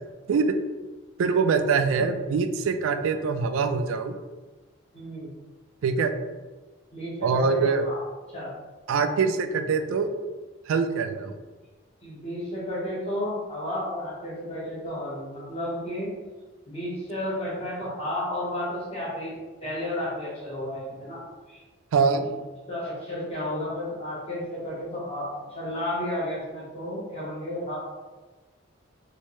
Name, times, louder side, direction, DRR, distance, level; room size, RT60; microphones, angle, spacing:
voice 1, 1.2-4.2 5.8-6.1 7.2-7.9 8.9-10.1 10.7-11.4 21.9-22.3, right 5 dB, 80° right, 8 dB, 0.3 m, -24 dB
voice 2, 4.9-5.3 6.9-7.6 7.8-8.0 8.3-8.5 12.0-16.2 16.7-21.2 21.5-21.6 22.0-22.3 22.7-27.8, left 1 dB, 30° left, -6 dB, 1.1 m, -32 dB
3.3 x 2.7 x 3.0 m, 1.3 s
head